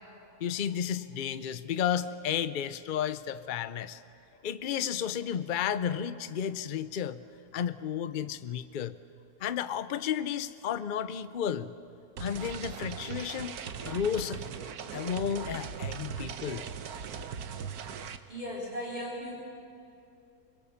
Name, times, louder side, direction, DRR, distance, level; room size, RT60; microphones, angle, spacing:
voice 1, 0.4-4.0 4.4-7.2 7.5-9.0 9.4-11.8 12.2-13.5 13.9-14.5 14.9-16.7, left 8 dB, 50° left, 12 dB, 0.6 m, -32 dB
sound 1, 12.2-18.2, right 7 dB, 80° right, 1.4 m, -39 dB
voice 2, 18.3-19.4, equal, 30° right, -5 dB, 3.4 m, -37 dB
25.0 x 22.0 x 7.2 m, 2.7 s
omnidirectional pair, 1.6 m